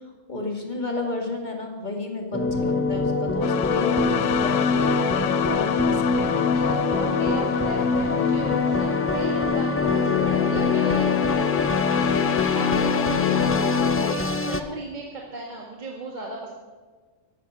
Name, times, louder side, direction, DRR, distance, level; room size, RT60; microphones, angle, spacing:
voice 1, 0.3-6.7, left 3 dB, 35° left, 2 dB, 2.4 m, -32 dB
sound 1, 2.3-14.6, left 2 dB, 15° left, 0.6 m, -26 dB
sound 2, 3.4-14.1, left 9 dB, 85° left, 1.1 m, -24 dB
voice 2, 6.1-16.5, right 2 dB, 35° right, -2 dB, 1.9 m, -35 dB
14.0 x 11.5 x 6.5 m, 1.4 s
omnidirectional pair, 1.3 m